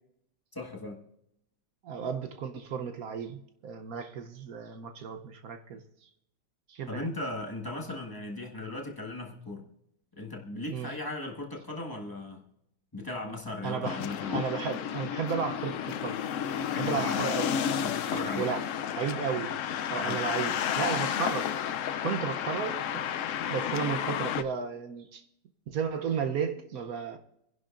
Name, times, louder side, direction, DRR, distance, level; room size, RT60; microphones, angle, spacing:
voice 1, 0.5-1.0 6.9-9.6 10.1-12.4 12.9-14.4 16.6-17.3 17.8-18.5 20.0-20.2, left 2 dB, 15° left, 1.4 m, -37 dB
voice 2, 1.8-6.1 6.7-7.1 10.7-10.9 13.6-14.0 14.3-17.6 18.4-18.6 19.0-21.6 22.0-23.0 23.5-25.2 25.7-27.2, right 7 dB, 60° right, 1.1 m, -34 dB
sound 1, 13.8-24.4, left 9 dB, 80° left, 0.7 m, -31 dB
25.5 x 11.0 x 2.5 m
omnidirectional pair, 1.9 m